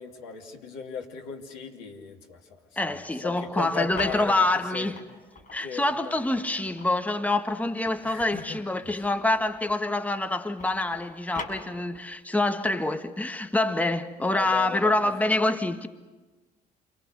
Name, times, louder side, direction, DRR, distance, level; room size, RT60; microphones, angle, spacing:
voice 1, 0.0-3.0 3.2-4.4 4.7-4.9 5.6-6.2 8.0-8.6 8.8-9.1 14.3-15.1, left 6 dB, 75° left, 2.7 m, -37 dB
voice 2, 2.8-5.0 5.5-15.9, left 2 dB, 5° left, 1.6 m, -26 dB
sound 1, 3.5-5.6 6.2-10.0 10.2-12.2, left 3 dB, 40° left, 6.2 m, -43 dB
29.5 x 25.0 x 6.7 m
figure-of-eight pair, 50°, 21 cm